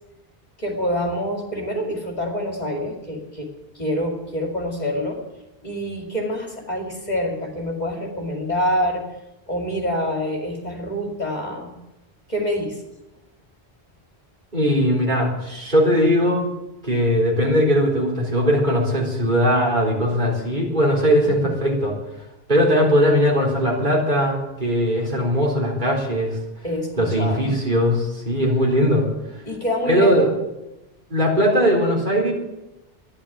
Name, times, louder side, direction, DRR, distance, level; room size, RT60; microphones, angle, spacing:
voice 1, 0.6-5.2 5.6-9.1 9.5-11.8 12.3-12.8 21.2-21.5 26.6-27.6 29.4-30.3, equal, 45° left, 2 dB, 2.6 m, -26 dB
voice 2, 14.5-16.5 16.8-22.0 22.5-26.4 27.0-29.1 29.9-30.3 31.1-32.3, equal, 50° right, -2 dB, 4.2 m, -19 dB
13.5 x 11.0 x 8.8 m, 0.94 s
omnidirectional pair, 1.0 m